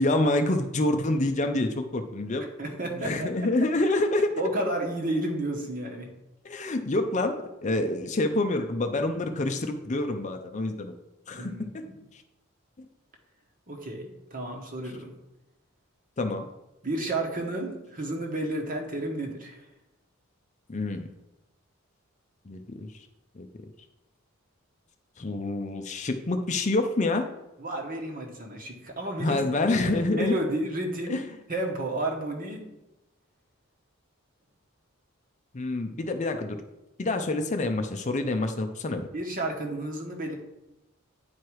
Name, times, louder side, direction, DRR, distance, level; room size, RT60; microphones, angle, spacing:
voice 1, 0.0-2.5 3.0-4.3 6.4-10.9 11.3-11.8 16.2-16.5 20.7-21.1 22.5-22.9 23.4-23.5 25.2-27.3 29.2-30.3 31.1-31.2 35.5-36.6 37.0-39.1, left 2 dB, 35° left, 6 dB, 0.5 m, -27 dB
voice 2, 2.6-3.5 4.4-6.1 11.4-12.0 13.7-15.2 16.8-19.6 27.6-29.4 29.8-31.2 31.5-32.6 39.1-40.3, right 1 dB, 40° right, 1 dB, 1.3 m, -32 dB
9.3 x 4.6 x 4.8 m, 0.95 s
head